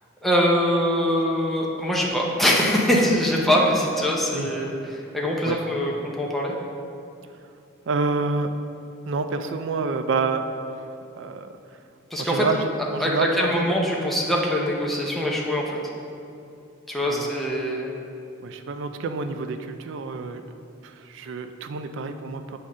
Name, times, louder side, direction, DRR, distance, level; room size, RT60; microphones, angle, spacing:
voice 1, 0.2-6.5 12.1-12.5 13.0-15.8 16.9-17.9, equal, ahead, -3 dB, 0.6 m, -23 dB
voice 2, 7.9-8.5 9.1-10.4 10.8-10.9 11.2-11.8 12.2-13.7 17.0-17.3 18.4-22.6, right 4 dB, 65° right, 8 dB, 0.4 m, -28 dB
7.7 x 3.6 x 5.4 m, 2.6 s
head